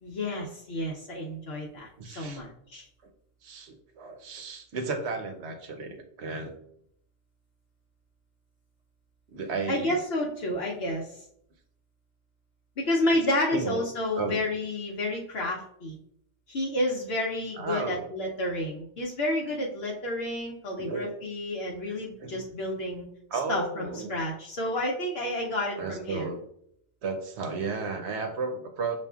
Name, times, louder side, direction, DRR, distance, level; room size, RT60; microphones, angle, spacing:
voice 1, 0.0-2.9 9.7-11.2 12.8-16.0 16.5-23.1 23.5-26.3, left 1 dB, 65° left, -2 dB, 0.9 m, -30 dB
voice 2, 2.0-2.4 2.7-3.1 3.4-6.5 9.3-9.9 13.5-13.8 14.2-14.5 17.6-18.1 20.8-21.1 21.9-22.5 23.3-24.1 25.8-26.4 27.0-29.0, right 4 dB, 70° right, 5 dB, 1.0 m, -34 dB
6.8 x 2.4 x 2.3 m, 0.70 s
omnidirectional pair, 1.2 m